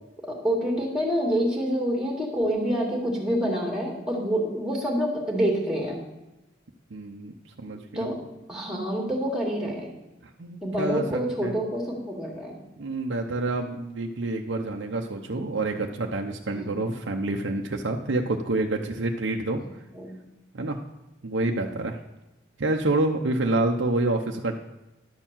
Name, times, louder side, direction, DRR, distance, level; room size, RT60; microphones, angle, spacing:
voice 1, 0.2-6.0 7.9-8.2 8.5-9.9 10.6-12.6 16.5-16.9 19.9-20.1, equal, 5° right, -1 dB, 2.0 m, -27 dB
voice 2, 6.9-8.1 10.4-11.5 12.8-19.6 20.5-20.8 21.2-22.0 22.6-24.6, right 2 dB, 80° right, 2 dB, 0.7 m, -28 dB
11.0 x 4.5 x 7.3 m, 0.97 s
head